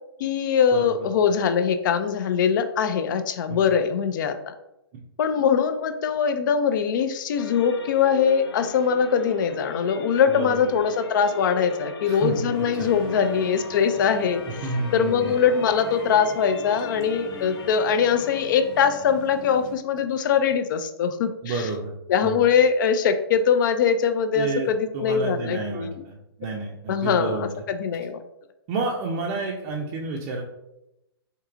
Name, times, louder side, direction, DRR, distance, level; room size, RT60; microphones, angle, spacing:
voice 1, 0.2-4.5 5.2-14.6 14.9-21.7 22.1-26.0 26.9-28.2, left 7 dB, 50° left, 10 dB, 0.4 m, -22 dB
voice 2, 0.7-1.1 3.5-3.7 10.3-10.6 12.1-12.9 14.6-15.4 21.4-21.9 22.2-22.4 24.3-27.6 28.7-30.4, right 3 dB, 30° right, -1 dB, 0.5 m, -30 dB
sound 1, 7.4-19.2, left 2 dB, 80° left, 0.7 m, -39 dB
sound 2, 12.5-19.8, right 2 dB, 5° left, 0.9 m, -43 dB
4.5 x 2.8 x 2.4 m, 0.89 s
hypercardioid pair, 135°, 13 cm